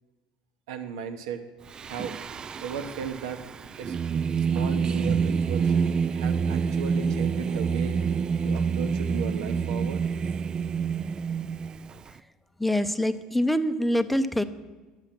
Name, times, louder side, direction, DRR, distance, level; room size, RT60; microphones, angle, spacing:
voice 1, 0.7-1.4 1.9-2.1 2.6-3.4 3.8-4.0 4.5-5.7 6.1-8.0 8.4-10.0, right 7 dB, 80° right, 7 dB, 1.0 m, -35 dB
Singing, 1.7-12.1, right 6 dB, 35° right, 0.3 m, -27 dB
voice 2, 12.6-14.4, equal, 5° left, 11 dB, 0.7 m, -25 dB
10.5 x 7.1 x 6.0 m, 1.3 s
hypercardioid pair, 80°, 2 cm